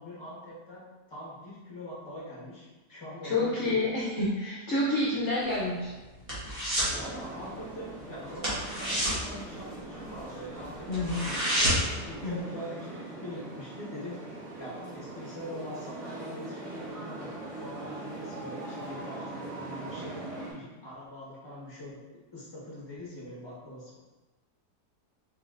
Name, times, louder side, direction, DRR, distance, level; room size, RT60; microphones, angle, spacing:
voice 1, 0.0-3.8 6.9-11.7 12.1-14.2 14.6-17.3 17.6-22.0 22.3-24.0, left 1 dB, 15° left, -7 dB, 1.2 m, -43 dB
voice 2, 3.2-5.9 10.9-11.3 12.2-12.5, left 2 dB, 55° left, -6 dB, 0.9 m, -28 dB
sound 1, 5.4-7.0 7.3-7.6 7.8-8.0 8.3-10.2 10.6-10.7 10.9-12.0 12.4-12.5, equal, 20° right, 1.2 m, -29 dB
sound 2, 6.9-20.5, right 2 dB, 65° right, 1.8 m, -41 dB
3.9 x 3.9 x 2.5 m, 1.2 s
omnidirectional pair, 1.7 m